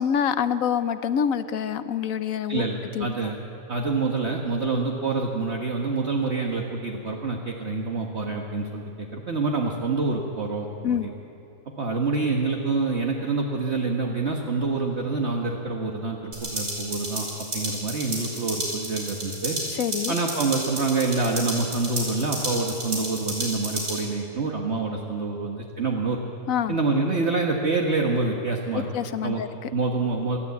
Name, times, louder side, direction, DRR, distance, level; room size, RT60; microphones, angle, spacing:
voice 1, 0.0-2.6 2.9-3.1 10.8-11.1 19.7-20.1 26.5-26.8 28.9-29.7, left 8 dB, 65° left, 12 dB, 1.0 m, -26 dB
voice 2, 2.5-3.3 3.7-11.1 11.8-19.6 20.1-26.2 26.7-28.9 29.2-29.4 29.7-30.4, right 3 dB, 45° right, 0 dB, 1.6 m, -26 dB
sound 1, 16.3-24.0, right 1 dB, 80° right, 5.4 m, -32 dB
26.5 x 12.0 x 8.4 m, 2.9 s
omnidirectional pair, 1.7 m